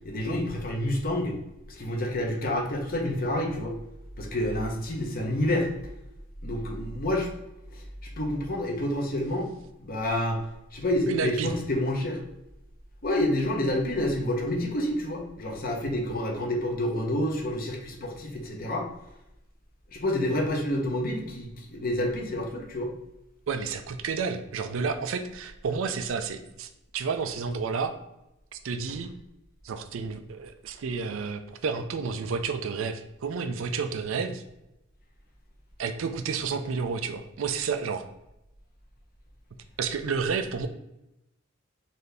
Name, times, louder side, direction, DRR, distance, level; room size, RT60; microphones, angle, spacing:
voice 1, 0.0-1.4 1.7-3.7 4.2-5.7 6.4-7.3 7.7-7.8 8.2-10.4 10.7-12.2 13.0-18.9 19.9-22.9, left 1 dB, 45° left, 1 dB, 0.8 m, -28 dB
voice 2, 11.1-11.6 23.5-27.9 28.5-29.1 29.6-34.4 35.8-38.1 39.8-40.7, right 5 dB, 70° right, 8 dB, 0.4 m, -31 dB
4.1 x 2.7 x 3.3 m, 0.89 s
head